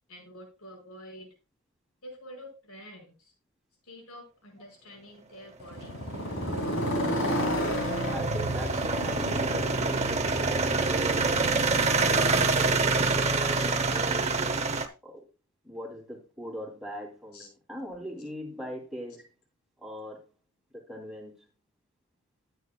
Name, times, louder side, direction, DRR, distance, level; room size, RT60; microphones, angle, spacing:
voice 1, 0.1-1.3 2.0-3.3 3.8-5.9 8.7-8.8 17.3-17.5, equal, 80° left, 5.4 m, -47 dB
Motorcycle, 5.6-13.6, equal, 60° left, 2.9 m, -33 dB
sound 1, 5.8-14.9, right 3 dB, 30° right, 0.8 m, -27 dB
voice 2, 8.1-11.4 12.0-14.3 15.0-15.2 15.6-19.3 19.8-20.3 20.7-21.5, equal, ahead, 3.1 m, -41 dB
13.5 x 9.1 x 2.3 m
head